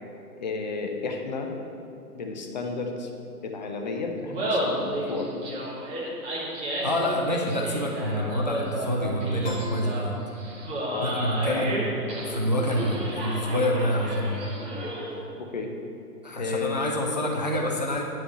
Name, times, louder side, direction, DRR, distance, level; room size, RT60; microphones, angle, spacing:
voice 1, 0.4-1.5 2.1-3.1 3.4-5.3 8.2-8.4 10.9-11.1 11.6-11.7 15.4-15.7 16.3-17.2, left 4 dB, 30° left, 2 dB, 0.6 m, -32 dB
Laughter, 4.2-15.2, right 1 dB, 15° right, 1.2 m, -32 dB
voice 2, 6.8-10.1 11.0-11.8 12.2-14.4 16.2-18.0, equal, 30° right, 0 dB, 0.4 m, -27 dB
Piano, 9.4-11.0, equal, 15° left, 1.2 m, -40 dB
10.0 x 3.5 x 7.1 m, 2.7 s
hypercardioid pair, 145°, 47 cm